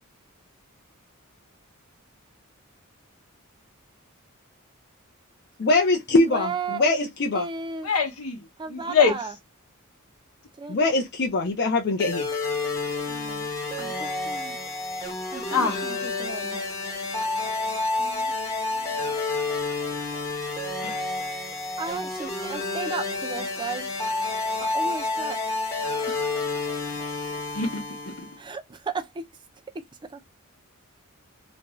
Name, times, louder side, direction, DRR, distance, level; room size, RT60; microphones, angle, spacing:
voice 1, 5.6-7.5 10.7-12.3, left 2 dB, 50° left, 0.5 m, -22 dB
voice 2, 6.3-6.8 7.3-7.9 8.6-9.3 10.6-10.8 13.1-13.5 13.8-14.6 15.3-16.6 18.0-18.3 21.8-23.9 24.6-25.4 26.1-26.2 28.4-29.2, right 4 dB, 20° right, 0.4 m, -34 dB
voice 3, 7.8-8.4 8.7-9.1 15.5-15.8 20.8-20.9 27.5-27.7, left 5 dB, 85° left, 0.9 m, -22 dB
sound 1, 12.0-28.4, left 3 dB, 15° left, 0.8 m, -29 dB
2.5 x 2.2 x 2.9 m
head